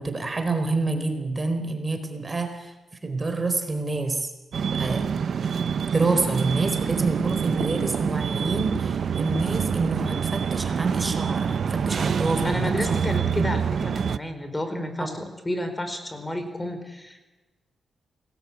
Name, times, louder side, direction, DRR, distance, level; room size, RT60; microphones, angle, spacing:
voice 1, 0.0-2.7 3.0-4.3 4.7-5.1 5.9-13.0 13.3-13.5 15.0-15.1, right 3 dB, 30° right, 7 dB, 4.4 m, -27 dB
sound 1, 4.5-14.2, right 7 dB, 65° right, 0.8 m, -26 dB
voice 2, 12.4-17.3, left 1 dB, 15° left, 8 dB, 4.7 m, -31 dB
28.0 x 20.0 x 8.6 m, 1.1 s
cardioid pair, 95°, 0 cm